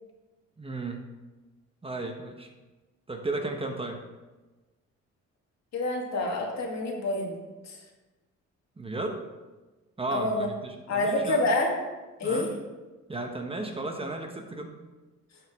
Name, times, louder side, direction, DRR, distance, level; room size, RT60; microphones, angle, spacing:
voice 1, 0.6-1.1 1.8-2.5 3.1-4.0 8.8-9.2 10.0-11.4 12.2-12.6 13.1-14.7, right 2 dB, 20° right, 4 dB, 1.1 m, -34 dB
voice 2, 5.7-7.4 7.6-7.8 10.1-10.5 10.9-11.8 12.2-12.5, left 2 dB, 60° left, 0 dB, 2.2 m, -27 dB
11.5 x 6.4 x 3.6 m, 1.2 s
cardioid pair, 90°, 30 cm